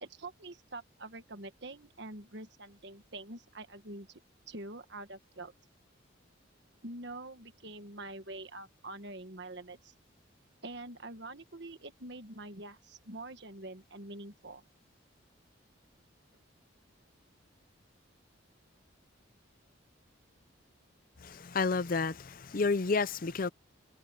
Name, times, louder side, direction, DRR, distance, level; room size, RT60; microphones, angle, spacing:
voice 1, 0.0-4.2 4.5-5.5 6.8-9.9 10.6-14.6, right 2 dB, 55° right, 1.6 m, -45 dB
voice 2, 21.2-23.5, left 4 dB, 45° left, 0.6 m, -30 dB
head